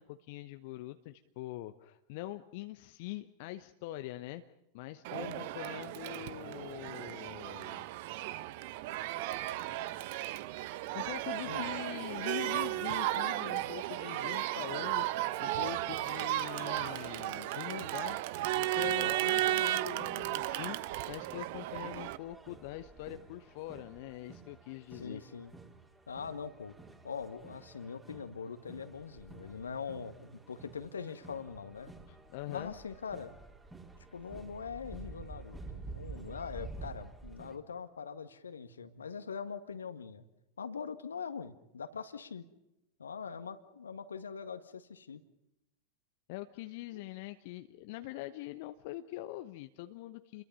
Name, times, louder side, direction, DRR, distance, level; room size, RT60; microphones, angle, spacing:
voice 1, 0.0-4.4 4.7-7.9 10.9-18.2 18.5-20.8 21.1-25.2 32.1-32.7 46.3-50.4, left 16 dB, 50° left, 9 dB, 1.0 m, -43 dB
Crowd, 5.0-22.2, right 15 dB, 50° right, 1.0 m, -35 dB
voice 2, 5.1-5.5 11.4-11.7 24.9-25.5 26.1-26.7 27.0-31.9 32.5-33.3 34.1-40.2 40.6-42.4 43.0-45.2 46.9-47.0, left 6 dB, 70° left, 10 dB, 1.8 m, -42 dB
sound 1, 18.5-37.6, right 3 dB, 10° right, 4.0 m, -51 dB
29.5 x 22.5 x 5.6 m, 0.90 s
figure-of-eight pair, 90°, 0 cm